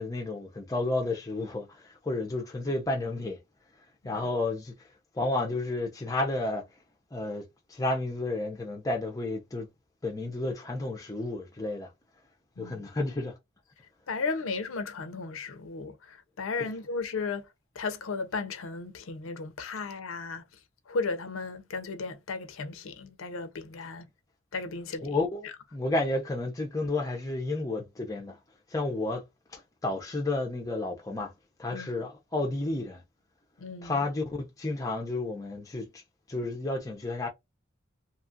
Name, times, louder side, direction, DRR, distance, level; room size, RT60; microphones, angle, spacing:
voice 1, 0.0-3.4 4.0-4.7 5.1-6.6 7.1-9.7 10.0-11.9 12.6-13.4 25.0-28.4 28.7-29.2 29.5-31.3 31.6-33.0 33.8-35.9 36.3-37.3, left 2 dB, 15° left, 0.5 m, -31 dB
voice 2, 14.1-17.5 17.7-20.4 20.9-24.1 24.5-25.2 25.4-25.5 31.7-31.9 33.6-34.0, left 4 dB, 80° left, 0.5 m, -35 dB
2.8 x 2.3 x 2.6 m
head